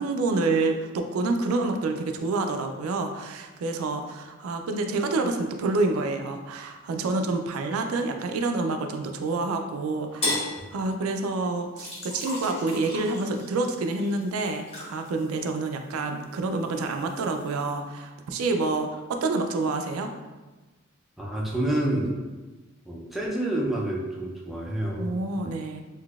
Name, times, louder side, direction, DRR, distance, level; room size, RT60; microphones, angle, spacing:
voice 1, 0.0-10.4 10.7-20.1 25.0-25.8, right 3 dB, 90° right, 5 dB, 0.3 m, -28 dB
sound 1, 10.2-10.5 11.8-16.0 16.4-17.8, left 1 dB, 30° left, 0.9 m, -35 dB
voice 2, 21.2-22.2 22.9-25.4, right 1 dB, ahead, -4 dB, 0.4 m, -28 dB
3.7 x 2.7 x 2.3 m, 1.2 s
head